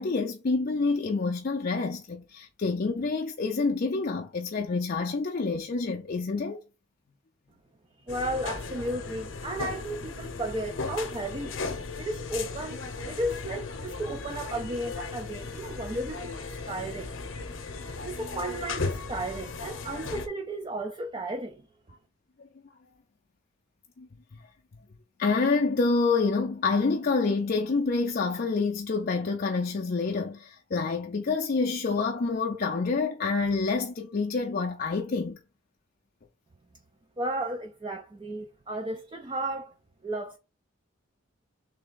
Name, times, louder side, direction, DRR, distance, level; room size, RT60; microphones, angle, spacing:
voice 1, 0.0-6.6 24.0-24.1 25.2-35.4, left 4 dB, 45° left, 0.4 m, -27 dB
sound 1, 8.1-20.3, left 4 dB, 70° left, 0.8 m, -36 dB
voice 2, 8.1-11.6 12.0-17.1 18.0-21.6 37.2-39.7 40.0-40.4, right 1 dB, 25° right, 0.4 m, -34 dB
3.5 x 3.3 x 3.7 m
head